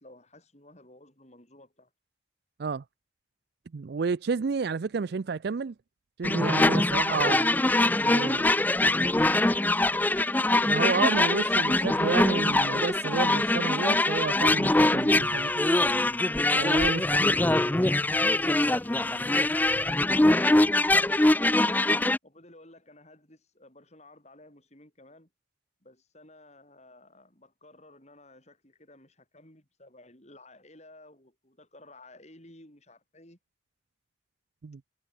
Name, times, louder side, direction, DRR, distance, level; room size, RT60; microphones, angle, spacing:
voice 1, 0.0-1.9 22.2-25.3 25.8-33.4, left 1 dB, 35° left, 7.5 m, -54 dB
voice 2, 3.7-5.7 6.2-7.5 8.0-8.4 10.6-15.5 16.5-17.4 34.6-34.8, right 5 dB, 60° right, 0.4 m, -31 dB
sound 1, 6.2-22.2, left 2 dB, 10° left, 0.4 m, -23 dB
head